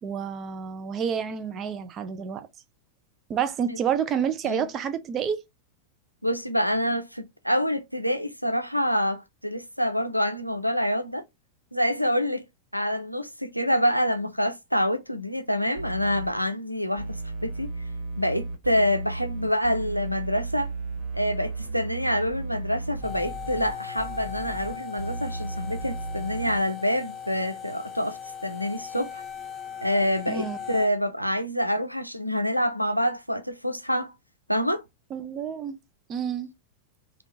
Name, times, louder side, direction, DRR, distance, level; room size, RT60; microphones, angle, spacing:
voice 1, 0.0-2.5 3.3-5.4 30.3-30.6 35.1-35.8 36.1-36.5, right 7 dB, 30° right, 0.5 m, -29 dB
voice 2, 6.2-11.2 11.7-12.4 12.7-17.7 18.2-20.7 21.1-29.2 29.8-34.1 34.5-34.8, equal, 90° left, 0.4 m, -27 dB
sound 1, 15.8-16.3 17.0-26.6, right 3 dB, 55° right, 1.3 m, -34 dB
sound 2, 23.0-30.9, left 7 dB, 25° left, 0.6 m, -39 dB
3.5 x 2.4 x 2.7 m
figure-of-eight pair, 90°, 0 cm